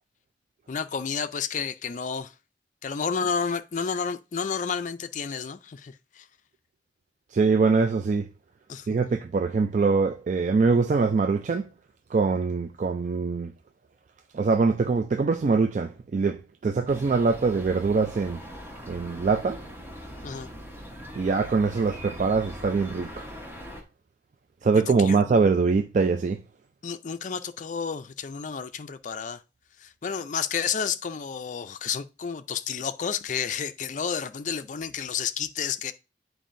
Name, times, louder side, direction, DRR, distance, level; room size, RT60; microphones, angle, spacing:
voice 1, 0.7-2.3 2.8-6.3 8.7-9.1 20.2-20.5 25.0-25.2 26.8-29.4 29.8-35.9, left 6 dB, 45° left, 0.4 m, -31 dB
voice 2, 7.3-8.3 8.9-11.7 12.1-13.5 14.3-18.4 18.9-19.6 21.2-23.3 24.6-26.4, right 4 dB, 45° right, 0.3 m, -23 dB
sound 1, 16.9-23.8, equal, 15° right, 1.0 m, -41 dB
9.2 x 4.6 x 2.6 m
head